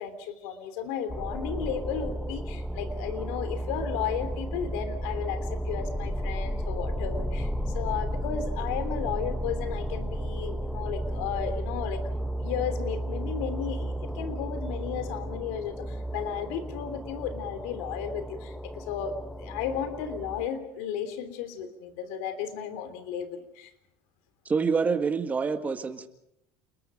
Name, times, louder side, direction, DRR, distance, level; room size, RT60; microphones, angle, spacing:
voice 1, 0.0-7.5 7.7-12.1 12.4-23.7, left 8 dB, 85° left, 10 dB, 3.3 m, -34 dB
sound 1, 1.1-20.5, equal, 5° left, 1.3 m, -33 dB
voice 2, 24.5-26.1, right 5 dB, 20° right, 7 dB, 1.9 m, -26 dB
29.0 x 21.5 x 5.1 m, 0.79 s
cardioid pair, 135°, 7 cm